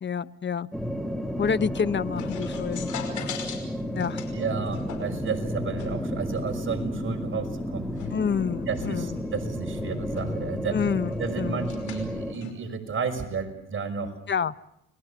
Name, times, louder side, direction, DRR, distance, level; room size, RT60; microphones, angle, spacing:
voice 1, 0.0-0.7 1.4-2.9 3.9-4.2 8.1-9.3 10.7-11.7 14.3-14.5, left 7 dB, 40° left, 16 dB, 1.0 m, -28 dB
sound 1, 0.7-12.3, equal, ahead, 2.4 m, -32 dB
sound 2, 1.5-12.5, left 7 dB, 75° left, 5.4 m, -42 dB
voice 2, 4.3-7.8 8.7-10.8 11.2-14.1, right 5 dB, 40° right, 5 dB, 5.6 m, -32 dB
30.0 x 21.0 x 7.1 m, 0.78 s
cardioid pair, 90°, 30 cm